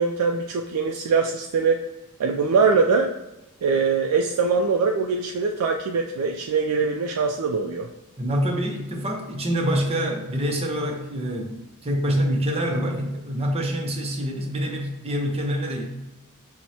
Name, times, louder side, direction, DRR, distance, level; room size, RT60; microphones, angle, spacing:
voice 1, 0.0-1.8 2.2-3.1 3.6-7.9, right 4 dB, 85° right, 2 dB, 0.3 m, -22 dB
voice 2, 8.2-11.6 11.8-15.8, equal, 25° right, 2 dB, 0.6 m, -26 dB
5.9 x 2.1 x 2.7 m, 0.96 s
head